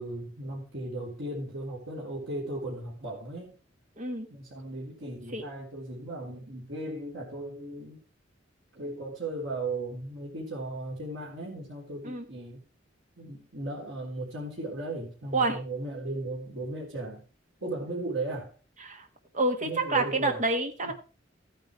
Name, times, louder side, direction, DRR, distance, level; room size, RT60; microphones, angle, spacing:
voice 1, 0.0-3.6 4.3-8.0 8.7-12.6 13.2-17.2 17.6-18.5 19.6-20.4 20.8-20.9, right 2 dB, 80° right, -4 dB, 3.9 m, -36 dB
voice 2, 4.0-4.3 5.3-5.4 12.0-12.2 15.3-15.6 18.8-19.1 19.3-20.9, right 2 dB, 40° right, 6 dB, 1.6 m, -28 dB
14.5 x 9.2 x 3.3 m, 0.33 s
head